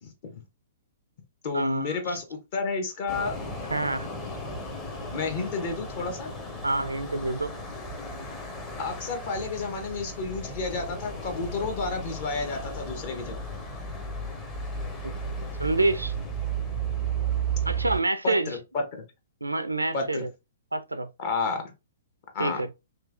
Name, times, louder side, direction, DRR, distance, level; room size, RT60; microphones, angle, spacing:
voice 1, 0.0-0.3 1.4-3.3 5.1-6.3 8.8-13.4 18.2-19.0 19.9-20.2 21.2-21.7 22.3-22.6, left 4 dB, 40° left, 1.0 m, -31 dB
voice 2, 1.5-2.2 3.7-4.1 6.6-7.6 15.0-15.1 15.6-16.1 17.7-18.6 19.4-20.3 20.7-21.1 22.4-22.7, right 2 dB, 85° right, 0.4 m, -27 dB
sound 1, 3.1-18.0, right 3 dB, 15° left, 0.8 m, -34 dB
3.0 x 2.3 x 2.5 m
figure-of-eight pair, 115°, 0 cm